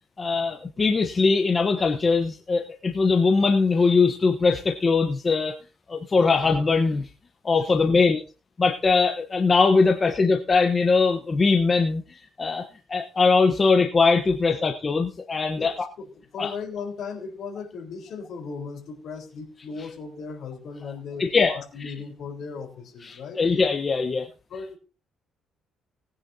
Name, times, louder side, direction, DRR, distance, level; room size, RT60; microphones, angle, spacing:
voice 1, 0.2-5.6 5.9-7.1 7.4-8.2 8.6-12.0 12.4-15.7 16.4-16.5 21.2-21.9 23.0-24.3, left 4 dB, 25° left, 3 dB, 1.0 m, -21 dB
voice 2, 16.0-23.4 24.5-24.8, left 5 dB, 55° left, 2 dB, 4.0 m, -37 dB
19.5 x 9.8 x 2.8 m, 0.34 s
cardioid pair, 160°, 0 cm